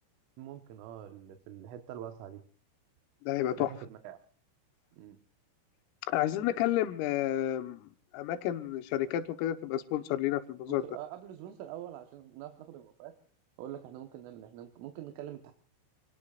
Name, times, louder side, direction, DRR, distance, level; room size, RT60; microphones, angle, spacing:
voice 1, 0.4-2.4 3.6-4.2 4.9-5.2 10.7-13.2 13.6-15.5, right 11 dB, 75° right, 3.7 m, -45 dB
voice 2, 3.3-3.7 6.1-10.8, left 13 dB, 85° left, 3.8 m, -31 dB
28.0 x 19.5 x 2.5 m
omnidirectional pair, 5.9 m